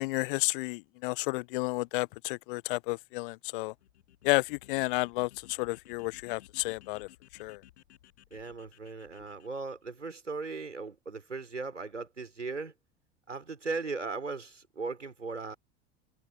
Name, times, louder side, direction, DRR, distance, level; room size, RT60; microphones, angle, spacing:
voice 1, 0.0-3.7 4.2-7.1 7.4-7.6, left 25 dB, 50° left, 0.4 m, -31 dB
sound 1, 3.7-9.8, left 13 dB, 65° left, 7.3 m, -58 dB
voice 2, 8.3-12.7 13.3-15.6, right 4 dB, 85° right, 5.1 m, -38 dB
figure-of-eight pair, 75°, 35 cm